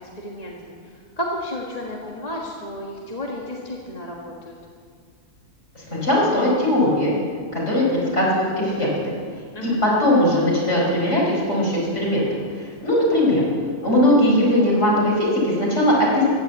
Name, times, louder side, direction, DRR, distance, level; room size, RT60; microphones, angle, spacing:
voice 1, 0.0-4.6 9.5-9.8, left 1 dB, 25° left, -2 dB, 1.6 m, -32 dB
voice 2, 5.9-7.2 7.5-9.1 9.6-12.3 12.5-13.4 13.8-16.2, left 1 dB, 45° left, -4 dB, 5.1 m, -19 dB
15.5 x 10.5 x 8.2 m, 2.1 s
omnidirectional pair, 1.7 m